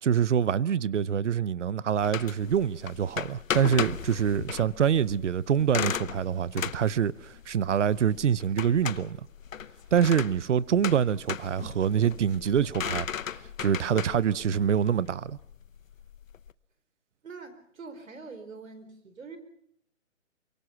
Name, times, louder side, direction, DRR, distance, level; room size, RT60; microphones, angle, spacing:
voice 1, 0.0-9.2 9.9-15.4, right 8 dB, 65° right, 0.8 m, -25 dB
sound 1, 2.0-16.5, left 8 dB, 80° left, 0.9 m, -37 dB
voice 2, 17.2-19.4, right 4 dB, 80° right, 4.4 m, -44 dB
23.5 x 23.5 x 5.8 m
hypercardioid pair, 180°, 39 cm